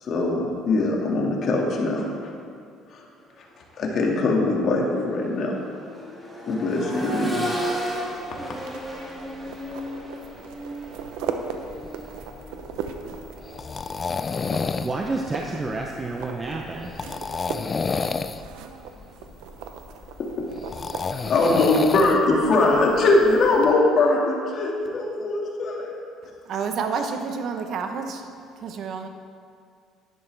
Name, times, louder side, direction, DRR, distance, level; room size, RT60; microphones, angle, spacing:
voice 1, 0.0-2.1 2.9-3.0 3.8-5.5 6.5-7.4 21.1-26.0, left 2 dB, 50° left, -1 dB, 2.1 m, -21 dB
Accelerating revving vroom, 3.6-3.8 4.2-14.1 15.8-15.9, equal, ahead, 2.4 m, -35 dB
sound 1, 7.0-23.7, right 6 dB, 85° right, 0.8 m, -39 dB
sound 2, 11.6-23.7, left 5 dB, 30° left, 0.4 m, -31 dB
voice 2, 14.8-16.9, right 3 dB, 20° right, 1 dB, 0.8 m, -29 dB
voice 3, 26.5-28.2 28.6-29.1, right 5 dB, 55° right, 6 dB, 1.0 m, -29 dB
11.0 x 11.0 x 3.4 m, 2.3 s
cardioid pair, 105°, 0 cm